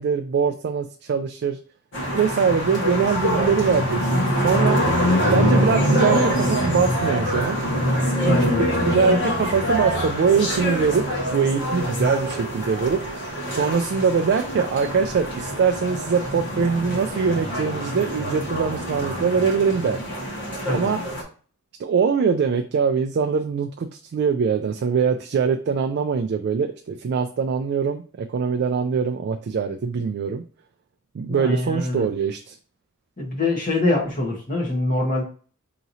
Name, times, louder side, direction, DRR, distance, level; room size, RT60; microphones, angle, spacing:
voice 1, 0.0-1.6 2.1-4.8 5.3-7.6 8.2-11.0 11.3-13.0 13.5-20.0 20.7-21.0 21.8-30.4 31.1-32.6, right 6 dB, 50° right, 6 dB, 0.3 m, -23 dB
sound 1, 1.9-21.2, equal, 55° left, 1.6 m, -24 dB
voice 2, 8.2-8.6 20.7-20.9 31.3-32.1 33.2-35.2, left 2 dB, 40° left, -1 dB, 1.3 m, -24 dB
4.8 x 2.9 x 2.7 m, 0.41 s
head